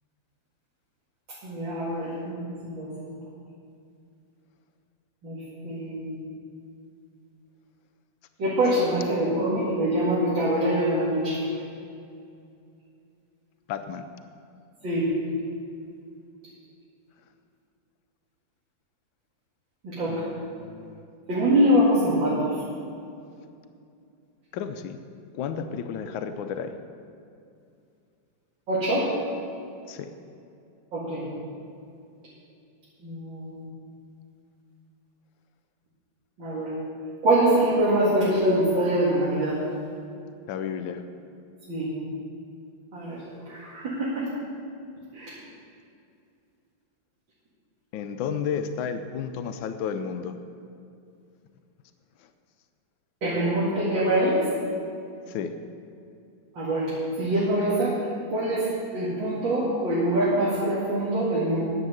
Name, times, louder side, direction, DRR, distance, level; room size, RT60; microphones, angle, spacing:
voice 1, 1.4-2.9 5.2-6.2 8.4-11.4 14.8-15.1 19.8-20.2 21.3-22.4 28.7-29.1 30.9-31.2 33.0-33.6 36.4-36.7 37.2-39.6 41.7-41.9 42.9-44.3 45.1-45.3 53.2-54.4 56.5-56.9 57.2-58.0 58.3-58.7 58.9-61.6, right 1 dB, 75° right, -8 dB, 2.9 m, -24 dB
voice 2, 13.7-14.1 20.1-21.0 24.5-25.0 25.4-26.7 29.9-30.1 40.5-41.0 47.9-50.4 55.3-55.6, left 7 dB, 90° left, 9 dB, 1.4 m, -32 dB
11.0 x 7.4 x 7.9 m, 2.5 s
omnidirectional pair, 2.1 m